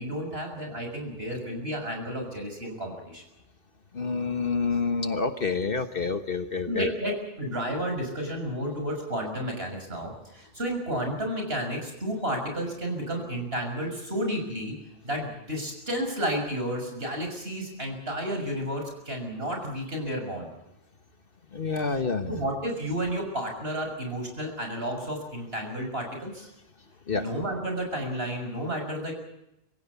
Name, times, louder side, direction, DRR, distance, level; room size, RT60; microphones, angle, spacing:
voice 1, 0.0-3.2 6.7-14.7 15.0-20.5 22.3-26.5 27.1-29.1, equal, 55° right, 3 dB, 6.7 m, -32 dB
voice 2, 3.9-7.2 21.5-22.3 27.1-27.3, left 4 dB, 50° left, 8 dB, 1.5 m, -28 dB
25.0 x 16.0 x 8.4 m, 0.86 s
omnidirectional pair, 1.2 m